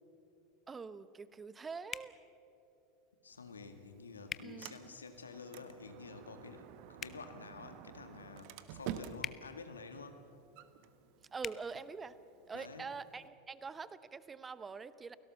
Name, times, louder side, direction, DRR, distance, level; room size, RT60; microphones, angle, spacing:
voice 1, 0.7-2.2 4.4-4.8 11.3-12.2 12.5-15.2, right 5 dB, 20° right, 16 dB, 0.9 m, -45 dB
sound 1, 1.9-2.1 4.3-4.5 6.9-7.2 9.2-9.4 11.4-11.6, left 7 dB, 25° left, 0.8 m, -41 dB
voice 2, 3.2-6.7 7.0-10.2 12.5-12.9, left 4 dB, 80° left, 7 dB, 1.9 m, -50 dB
Sliding door, 3.3-13.3, right 10 dB, 55° right, 1.2 m, -51 dB
29.5 x 17.5 x 7.0 m, 2.8 s
figure-of-eight pair, 80°, 0 cm